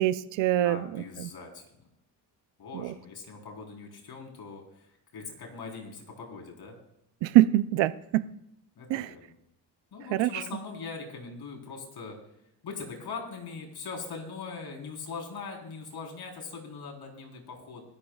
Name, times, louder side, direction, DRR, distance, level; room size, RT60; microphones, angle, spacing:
voice 1, 0.0-1.3 2.7-2.9 7.2-8.2 8.9-9.1 10.1-10.4, right 14 dB, 85° right, 13 dB, 0.7 m, -24 dB
voice 2, 0.6-1.7 2.6-6.8 8.8-9.4 9.9-12.2 12.6-17.8, left 4 dB, 60° left, 1 dB, 4.2 m, -41 dB
25.0 x 12.0 x 2.4 m, 0.81 s
cardioid pair, 95°, 43 cm